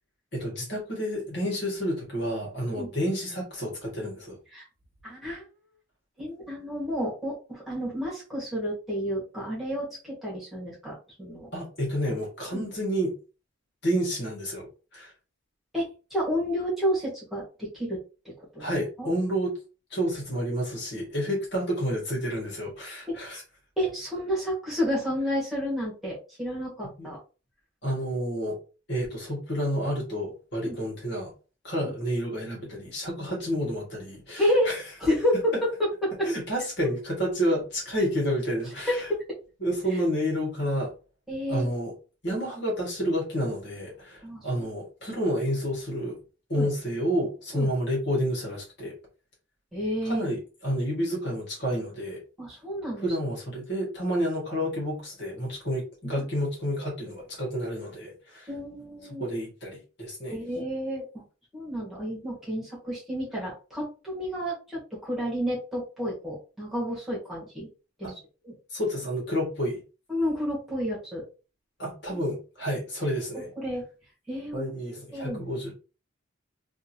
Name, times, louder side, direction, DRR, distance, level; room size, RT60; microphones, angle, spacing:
voice 1, 0.3-4.4 11.5-13.1 13.8-15.1 18.6-19.5 19.9-23.4 27.0-27.1 27.8-28.6 28.9-31.3 31.6-34.8 36.2-39.1 39.6-40.9 41.5-41.9 42.2-46.2 46.5-49.0 50.0-52.2 53.0-58.5 59.2-60.4 68.0-68.1 68.7-69.8 71.8-73.5 74.5-75.7, equal, 55° left, -2 dB, 1.9 m, -30 dB
voice 2, 5.0-5.4 6.2-11.5 12.5-12.7 15.7-18.0 18.5-18.7 19.0-19.1 23.1-23.2 23.8-27.2 30.6-30.8 34.4-34.7 35.0-35.5 36.0-36.3 38.8-38.9 41.3-41.7 44.2-44.4 46.5-46.7 47.5-47.7 49.7-50.2 52.4-53.1 56.2-56.3 58.5-59.2 60.3-61.2 61.5-67.7 68.0-68.1 68.4-68.5 70.1-71.2 72.1-72.2 73.3-73.8 74.3-74.7 75.1-75.5, equal, ahead, -7 dB, 1.7 m, -30 dB
3.6 x 2.8 x 2.9 m, 0.33 s
head